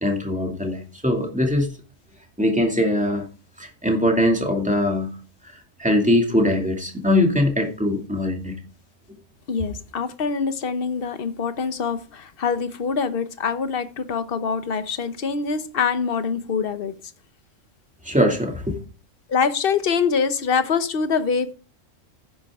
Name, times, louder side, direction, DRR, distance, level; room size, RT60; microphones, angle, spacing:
voice 1, 0.0-1.7 2.4-3.2 3.6-5.1 5.8-8.6 18.0-18.8, left 1 dB, 5° right, 2 dB, 2.4 m, -21 dB
voice 2, 9.5-16.9 19.3-21.5, left 5 dB, 50° left, 11 dB, 1.1 m, -24 dB
10.5 x 10.0 x 3.7 m, 0.35 s
omnidirectional pair, 1.3 m